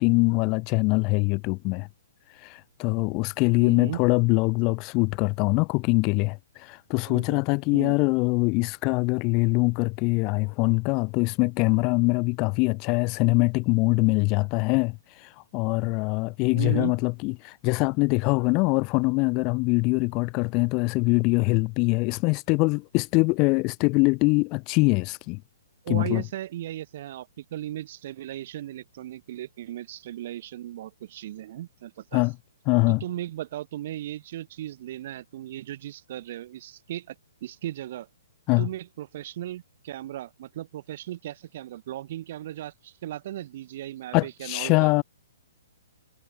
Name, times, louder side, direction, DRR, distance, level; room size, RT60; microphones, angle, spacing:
voice 1, 0.0-1.9 2.4-15.0 15.2-25.4 25.9-26.2 32.1-32.3 32.7-33.0 38.5-38.7 44.1-45.0, left 28 dB, 35° left, 2.9 m, -23 dB
voice 2, 3.6-4.0 7.1-7.4 7.7-8.0 16.5-16.9 25.8-32.2 32.9-37.1 37.4-38.1 38.6-44.9, right 13 dB, 50° right, 3.3 m, -36 dB
hypercardioid pair, 130°, 0 cm